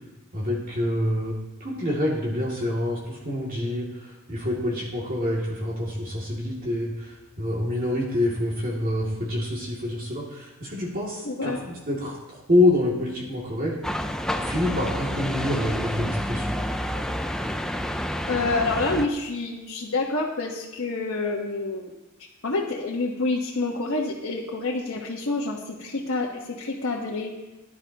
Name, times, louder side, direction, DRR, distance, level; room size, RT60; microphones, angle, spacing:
voice 1, 0.3-13.8 14.4-16.4, left 1 dB, 40° right, -4 dB, 2.4 m, -27 dB
voice 2, 11.2-11.6 18.3-21.9 22.4-27.3, left 3 dB, 70° left, -3 dB, 1.3 m, -28 dB
sound 1, 13.8-19.1, equal, 5° left, 0.5 m, -29 dB
18.5 x 11.0 x 2.9 m, 1.0 s
head